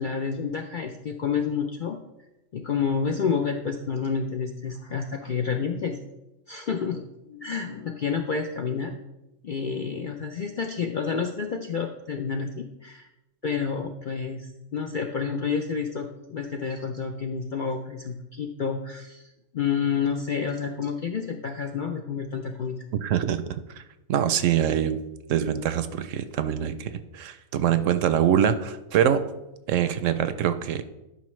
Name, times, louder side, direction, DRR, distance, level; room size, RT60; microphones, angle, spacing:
voice 1, 0.0-2.0 2.5-5.9 6.5-9.0 9.4-13.1 13.4-22.8, left 6 dB, 60° left, 3 dB, 0.5 m, -29 dB
voice 2, 22.9-23.8 24.1-25.0 25.3-29.2 29.7-30.8, right 9 dB, 70° right, 11 dB, 0.9 m, -24 dB
11.5 x 5.4 x 3.2 m, 0.96 s
omnidirectional pair, 1.4 m